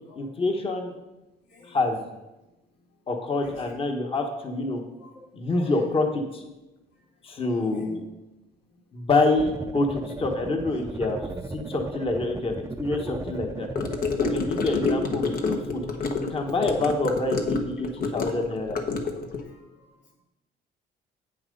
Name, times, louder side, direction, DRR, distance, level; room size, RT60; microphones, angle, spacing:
voice 1, 0.1-0.9 1.6-2.1 3.1-4.8 5.3-6.4 7.2-8.0 8.9-11.2 11.5-13.7 14.3-15.8 16.2-18.8, left 2 dB, 35° left, 3 dB, 1.4 m, -26 dB
voice 2, 5.0-6.0 6.9-7.0 7.5-8.0 10.7-10.8 14.3-14.5 19.4-20.1, left 3 dB, 90° left, -2 dB, 2.9 m, -49 dB
sound 1, 9.4-14.9, right 3 dB, 15° right, 0.6 m, -36 dB
Gurgling / Car passing by / Sink (filling or washing), 13.7-19.4, left 4 dB, 60° left, 1.3 m, -28 dB
8.6 x 7.3 x 5.3 m, 0.99 s
cardioid pair, 110°, 17 cm